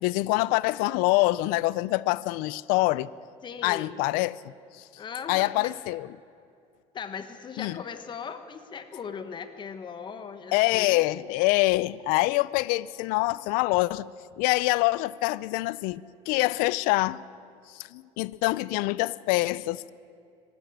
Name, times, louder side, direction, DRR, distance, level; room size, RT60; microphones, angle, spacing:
voice 1, 0.0-3.1 3.6-4.8 5.3-6.1 7.6-7.8 10.5-14.1 14.4-17.2 17.7-19.9, left 20 dB, 80° left, 0.5 m, -25 dB
voice 2, 3.4-4.0 5.0-5.7 6.9-11.0, left 6 dB, 35° left, 1.2 m, -39 dB
23.0 x 13.0 x 9.3 m
cardioid pair, 135°, 14 cm